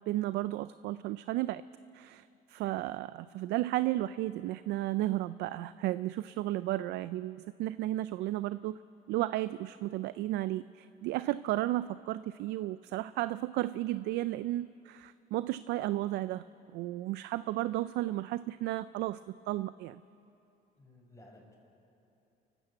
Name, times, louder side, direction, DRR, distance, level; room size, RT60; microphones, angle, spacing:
voice 1, 0.1-1.6 1.9-8.8 9.1-16.4 16.7-19.2 19.5-20.0, right 15 dB, 85° right, 15 dB, 0.4 m, -33 dB
voice 2, 20.8-21.5, left 1 dB, 20° left, 1 dB, 5.4 m, -56 dB
29.5 x 12.5 x 7.9 m, 2.9 s
cardioid pair, 110°, 17 cm